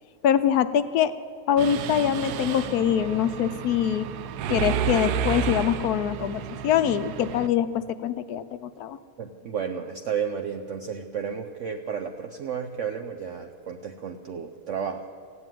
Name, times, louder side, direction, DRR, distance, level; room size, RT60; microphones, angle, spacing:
voice 1, 0.2-1.1 1.5-4.1 4.5-9.0, left 9 dB, 75° left, 12 dB, 1.1 m, -24 dB
Mechanisms, 1.6-7.5, right 8 dB, 75° right, 1.1 m, -31 dB
voice 2, 9.2-15.1, right 7 dB, 60° right, 4 dB, 0.9 m, -32 dB
15.0 x 9.5 x 9.1 m, 2.2 s
omnidirectional pair, 1.7 m